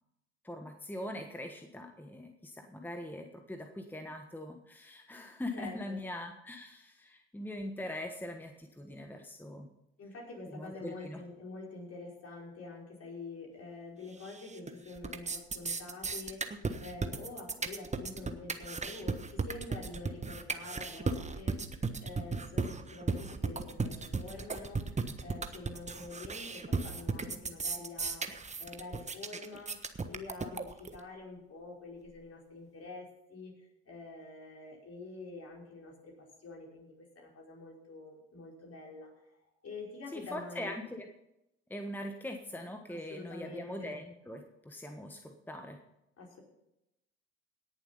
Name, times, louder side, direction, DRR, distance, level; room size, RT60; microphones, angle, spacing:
voice 1, 0.4-9.7 10.5-11.2 40.1-41.1 41.7-45.8, left 1 dB, 5° left, 5 dB, 1.3 m, -42 dB
voice 2, 5.5-6.0 10.0-21.6 22.0-24.9 25.2-28.3 28.6-39.3 39.6-40.8 42.9-44.0 46.2-46.4, left 3 dB, 45° left, -2 dB, 5.5 m, -47 dB
sound 1, 14.2-14.7 15.0-31.0, right 4 dB, 20° right, 1.3 m, -35 dB
18.0 x 7.3 x 5.6 m, 0.87 s
hypercardioid pair, 55°, 33 cm